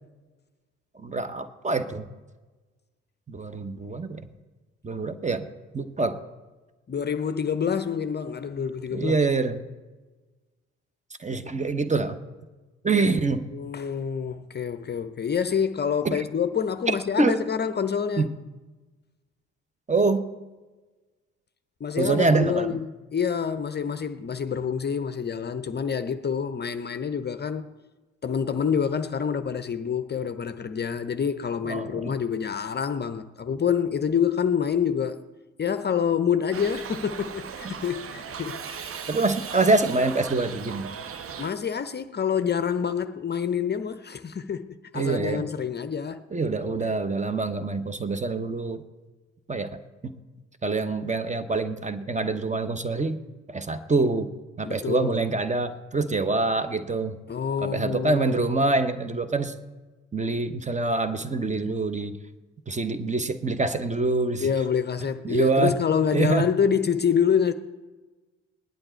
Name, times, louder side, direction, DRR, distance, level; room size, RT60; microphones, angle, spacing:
voice 1, 1.0-2.0 3.3-4.3 4.8-5.5 5.7-6.2 8.9-9.6 11.2-12.2 12.8-13.5 16.0-16.2 16.9-17.4 18.2-18.3 19.9-20.3 22.0-22.8 31.6-32.1 39.1-40.9 44.9-45.5 46.3-48.8 49.5-50.1 50.6-53.2 53.5-54.3 54.6-57.2 57.6-59.6 60.1-62.2 62.7-64.5 65.2-65.8 66.1-66.5, right 3 dB, 20° right, 1.1 m, -25 dB
voice 2, 6.9-9.2 13.5-18.3 21.8-27.7 28.2-35.2 35.6-39.0 41.4-46.2 54.6-55.2 57.3-58.4 64.4-67.5, left 7 dB, 30° left, 0.7 m, -27 dB
Shout / Livestock farm animals working animals, 36.5-41.5, right 7 dB, 40° right, 1.0 m, -37 dB
18.0 x 11.0 x 4.5 m
figure-of-eight pair, 45°, 35 cm